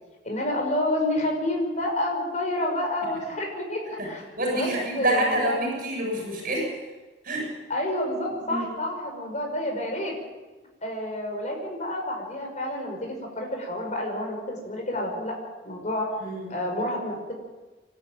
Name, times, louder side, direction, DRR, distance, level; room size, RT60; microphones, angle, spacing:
voice 1, 0.2-4.3 4.5-5.7 7.7-10.1 10.8-15.4 15.6-16.1 16.5-17.3, left 1 dB, 45° left, 1 dB, 5.6 m, -29 dB
voice 2, 4.4-6.7 7.3-7.4 8.5-8.7 16.2-16.5, right 1 dB, 55° right, 0 dB, 7.9 m, -27 dB
26.5 x 12.5 x 8.9 m, 1.2 s
head